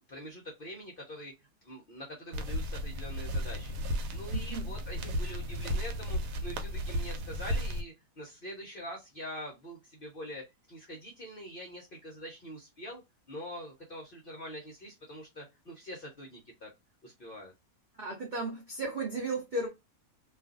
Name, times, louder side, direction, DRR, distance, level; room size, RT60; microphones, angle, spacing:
voice 1, 0.1-1.3 1.6-3.8 4.1-13.0 13.3-16.7 17.0-17.5, equal, 55° left, 0.6 m, -44 dB
sound 1, 2.3-7.8, equal, 80° right, 1.1 m, -34 dB
voice 2, 4.3-4.7 17.9-19.7, right 2 dB, 65° right, 0.4 m, -35 dB
2.4 x 2.4 x 2.3 m
omnidirectional pair, 1.7 m